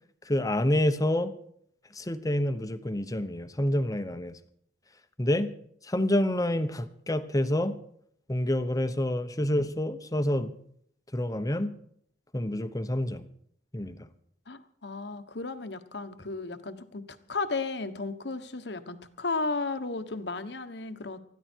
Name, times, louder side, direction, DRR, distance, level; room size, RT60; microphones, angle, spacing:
voice 1, 0.3-1.3 1.9-4.4 5.2-5.5 5.8-7.7 8.3-10.5 11.1-11.7 12.3-13.2 13.7-14.1, left 1 dB, 20° left, 10 dB, 1.0 m, -28 dB
voice 2, 14.5-17.0 17.3-21.2, left 3 dB, 70° left, 10 dB, 1.3 m, -34 dB
20.5 x 14.0 x 4.6 m, 0.66 s
head